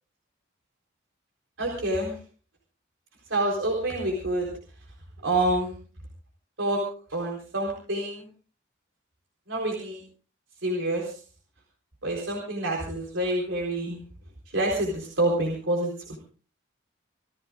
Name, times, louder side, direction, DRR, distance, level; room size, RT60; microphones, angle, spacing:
voice 1, 1.6-2.2 3.3-4.5 5.2-5.8 6.6-6.8 7.1-8.3 9.5-10.0 10.6-11.1 12.0-14.0 14.5-16.2, right 1 dB, 75° right, -1 dB, 4.0 m, -27 dB
28.0 x 15.5 x 2.5 m, 0.40 s
head